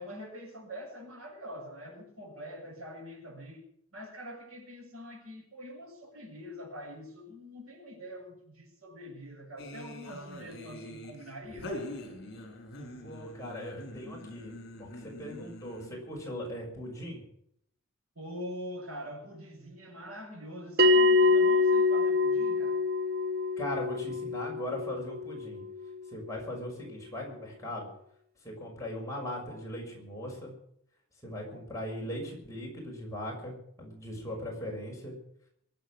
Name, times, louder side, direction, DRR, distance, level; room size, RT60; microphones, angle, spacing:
voice 1, 0.0-3.6 3.9-11.7 18.2-22.8, equal, 85° right, 0 dB, 7.4 m, -44 dB
sound 1, 9.6-16.1, left 1 dB, 50° left, 4.8 m, -44 dB
voice 2, 13.0-17.2 23.6-25.6 26.1-27.9 28.4-30.5 31.2-35.1, left 1 dB, 15° left, -2 dB, 6.3 m, -39 dB
Bell, 20.8-25.8, left 3 dB, 45° right, 1.1 m, -25 dB
23.0 x 9.2 x 6.4 m, 0.70 s
head